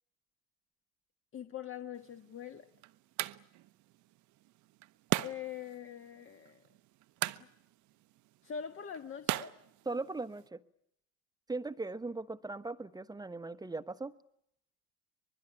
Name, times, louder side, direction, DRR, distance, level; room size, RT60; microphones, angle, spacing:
voice 1, 1.3-2.6 5.2-6.6 8.4-9.5, left 8 dB, 30° left, 7 dB, 1.6 m, -43 dB
sound 1, 2.0-10.5, right 17 dB, 50° right, 0.9 m, -40 dB
voice 2, 9.8-10.6 11.5-14.2, right 3 dB, 10° right, 14 dB, 1.1 m, -39 dB
24.0 x 21.5 x 9.9 m, 0.75 s
hypercardioid pair, 75°, 38 cm